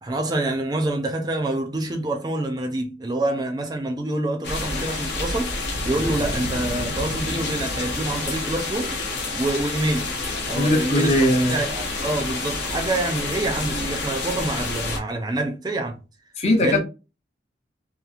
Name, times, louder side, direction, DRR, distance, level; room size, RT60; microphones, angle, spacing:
voice 1, 0.0-5.5 5.8-9.0 9.4-10.1 10.5-11.2 11.5-16.0 16.6-16.8, right 2 dB, 20° right, 0.4 m, -26 dB
sound 1, 4.4-15.0, left 3 dB, 70° left, 0.9 m, -29 dB
Boom, 5.7-8.8, equal, 90° right, 0.8 m, -34 dB
voice 2, 10.5-11.7 16.4-16.8, left 1 dB, 35° left, 0.6 m, -20 dB
2.9 x 2.4 x 2.4 m
head